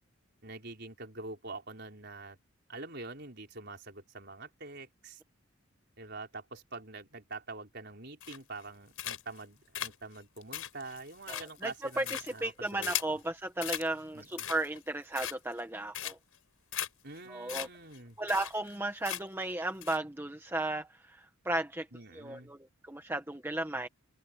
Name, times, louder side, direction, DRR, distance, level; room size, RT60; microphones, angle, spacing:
voice 1, 0.4-2.4 2.7-5.2 6.0-13.2 14.1-14.5 17.0-18.2 21.9-22.5, right 3 dB, 50° right, 5.0 m, -45 dB
sound 1, 8.2-8.6 9.0-9.4 9.7-13.2 13.6-13.9 14.2-14.8 15.1-15.6 15.9-16.4 16.7-16.9 17.2-17.3 17.5-17.7 17.9-18.0 18.3-18.8 19.0-19.4 19.8-20.0, left 11 dB, 85° left, 5.8 m, -38 dB
voice 2, 11.3-16.2 17.3-17.7 18.2-21.9 22.1-23.9, right 2 dB, 10° right, 1.1 m, -35 dB
open air
head